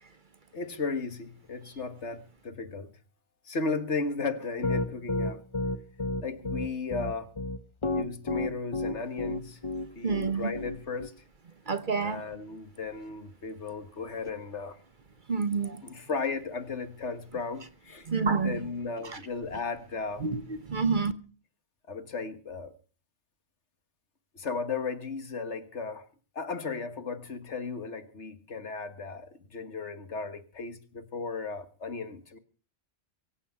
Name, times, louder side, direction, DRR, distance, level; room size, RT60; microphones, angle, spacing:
voice 1, 0.5-2.9 3.5-5.4 6.2-7.3 7.9-9.6 10.0-11.1 12.0-14.8 15.8-20.3 21.9-22.8 24.3-26.1 26.4-32.4, left 4 dB, 70° left, 1.9 m, -35 dB
Piano, 4.6-11.1, left 2 dB, 25° left, 0.9 m, -31 dB
voice 2, 10.0-10.5 11.7-12.2 15.3-15.8 18.1-18.6 20.2-21.1, right 5 dB, 45° right, 1.2 m, -28 dB
23.0 x 8.8 x 5.8 m
omnidirectional pair, 1.2 m